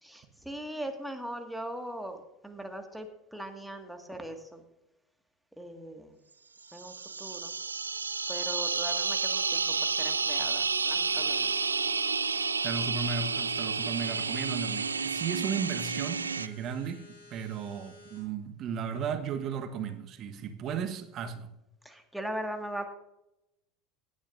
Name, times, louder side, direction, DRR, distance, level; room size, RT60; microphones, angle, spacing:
voice 1, 0.0-4.6 5.6-6.2 6.7-7.6 8.3-11.5 21.8-22.9, right 1 dB, ahead, 1.8 m, -40 dB
sound 1, 6.7-16.5, right 5 dB, 85° right, 0.4 m, -30 dB
sound 2, 11.0-18.2, left 2 dB, 80° left, 3.8 m, -53 dB
voice 2, 12.3-17.0 17.3-21.5, right 6 dB, 45° right, 1.3 m, -35 dB
17.5 x 10.0 x 2.6 m
figure-of-eight pair, 75°, 0 cm